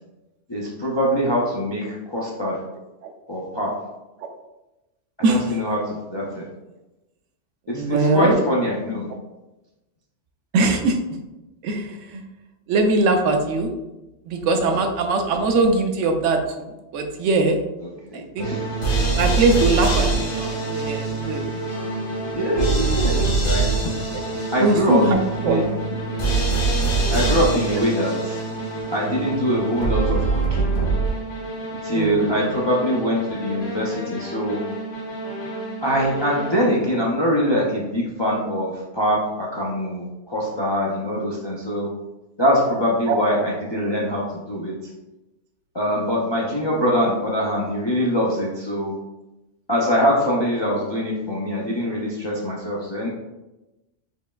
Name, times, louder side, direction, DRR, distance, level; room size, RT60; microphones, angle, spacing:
voice 1, 0.5-2.6 3.3-3.8 5.3-6.5 7.7-9.1 17.8-18.7 21.5-23.9 24.5-25.1 25.4-25.8 27.1-28.4 28.9-30.9 31.8-34.6 35.8-41.9 42.4-44.9 45.7-48.9 49.7-53.1, equal, 40° left, -4 dB, 0.4 m, -23 dB
voice 2, 7.7-8.4 10.5-11.0 11.6-12.2 12.7-13.7 14.3-17.6 18.1-18.5 19.0-21.4 23.0-23.1 24.6-25.2 25.4-25.6 31.9-32.5 43.1-43.2, right 3 dB, 85° right, 4 dB, 0.9 m, -21 dB
sound 1, 18.4-36.9, right 3 dB, 70° left, 1.3 m, -25 dB
4.8 x 3.1 x 2.2 m, 1.0 s
omnidirectional pair, 1.3 m